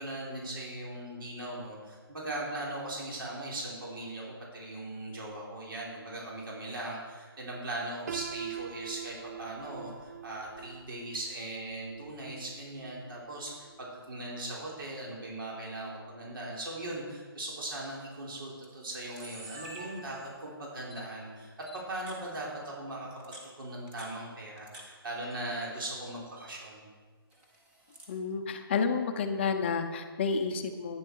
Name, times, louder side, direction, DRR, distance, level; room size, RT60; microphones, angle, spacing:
voice 1, 0.0-21.5 21.9-26.8, right 1 dB, 60° right, -4 dB, 4.0 m, -39 dB
Piano, 8.1-13.9, right 9 dB, 40° right, 0.4 m, -44 dB
Camera, 18.0-18.1 18.6-18.7 18.9-20.5 20.9-21.0 21.7-22.2 23.1-24.9 25.2-25.9 26.2-26.5 27.3-28.2, right 1 dB, 10° right, 1.1 m, -48 dB
voice 2, 28.1-31.0, left 5 dB, 30° left, 6 dB, 0.7 m, -30 dB
11.0 x 9.7 x 4.7 m, 1.5 s
hypercardioid pair, 165°, 13 cm